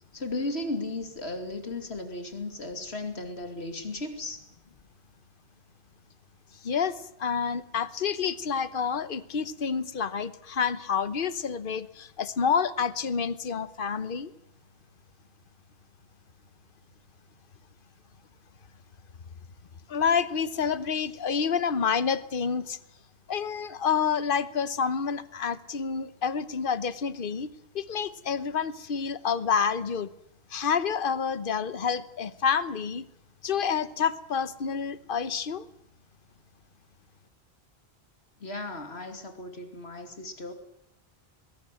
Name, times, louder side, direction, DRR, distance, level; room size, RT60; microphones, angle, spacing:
voice 1, 0.1-4.4 38.4-40.5, left 2 dB, 85° left, 6 dB, 2.9 m, -35 dB
voice 2, 6.6-14.3 19.9-22.8 23.3-27.5 27.7-30.1 30.5-33.1 33.4-35.6, left 6 dB, 60° left, 15 dB, 1.2 m, -28 dB
21.0 x 17.5 x 9.1 m, 0.75 s
omnidirectional pair, 1.1 m